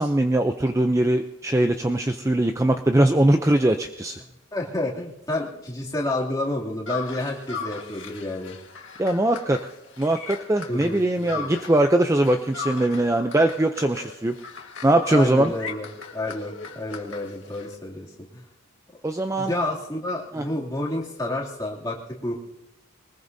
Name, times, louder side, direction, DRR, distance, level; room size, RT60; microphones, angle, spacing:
voice 1, 0.0-4.2 9.0-9.6 10.0-14.3 14.8-15.5 19.0-19.5 20.3-20.4, right 1 dB, 15° right, 6 dB, 0.5 m, -21 dB
voice 2, 4.5-8.6 10.7-11.5 15.1-15.9 16.1-18.4 19.4-22.4, left 1 dB, 20° left, -3 dB, 2.7 m, -30 dB
sound 1, 6.9-11.9 12.2-17.7, left 5 dB, 70° left, 1.8 m, -38 dB
22.5 x 20.0 x 2.7 m, 0.88 s
head